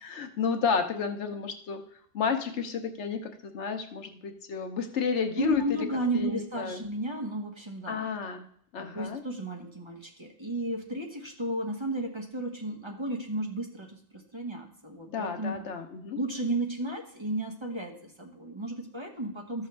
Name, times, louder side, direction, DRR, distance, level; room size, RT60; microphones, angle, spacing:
voice 1, 0.0-1.8 2.1-5.6 6.1-6.8 7.9-8.4 8.7-9.2 15.1-16.2, left 6 dB, 85° left, 6 dB, 1.2 m, -31 dB
voice 2, 5.4-8.1 8.8-15.6 16.1-19.7, right 1 dB, 25° right, 2 dB, 1.1 m, -33 dB
13.5 x 6.1 x 3.3 m, 0.66 s
omnidirectional pair, 1.2 m